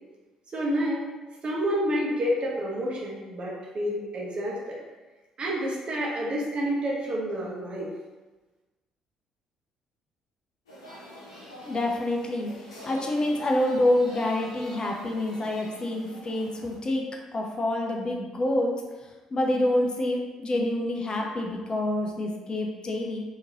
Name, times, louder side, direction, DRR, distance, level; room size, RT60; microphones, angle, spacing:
voice 1, 0.5-1.0 1.4-4.8 5.4-7.9, equal, 40° right, -3 dB, 1.0 m, -29 dB
sound 1, 10.7-16.8, equal, 80° left, 0.8 m, -45 dB
voice 2, 11.6-12.5 12.8-17.0 17.3-18.7 19.3-23.2, left 1 dB, 30° left, 1 dB, 0.6 m, -27 dB
3.6 x 2.8 x 3.0 m, 1.2 s
figure-of-eight pair, 45°, 3 cm